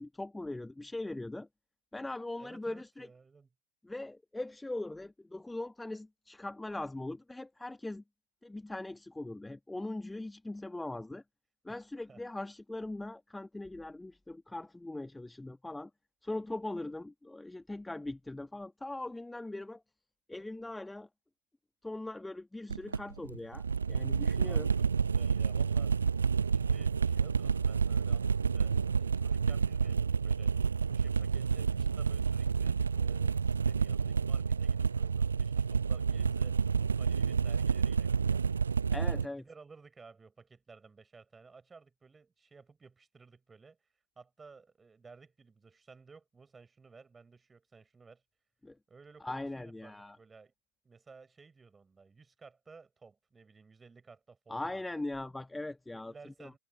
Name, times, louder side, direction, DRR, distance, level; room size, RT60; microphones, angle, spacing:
voice 1, 0.0-1.5 1.9-3.1 3.8-8.0 8.4-11.2 11.6-15.9 16.2-19.8 20.3-21.1 21.8-24.7 38.9-39.4 48.6-48.8 49.2-50.2 54.5-56.1 56.4-56.6, left 2 dB, 5° left, 1.6 m, -40 dB
voice 2, 2.4-3.5 11.7-11.8 12.1-12.2 24.4-26.0 26.5-30.5 30.9-38.4 39.1-43.8 44.1-48.2 48.9-50.5 50.8-54.8 55.9-56.6, right 4 dB, 15° right, 4.9 m, -56 dB
sound 1, 22.7-39.3, right 6 dB, 75° right, 0.5 m, -29 dB
figure-of-eight pair, 90°, 0 cm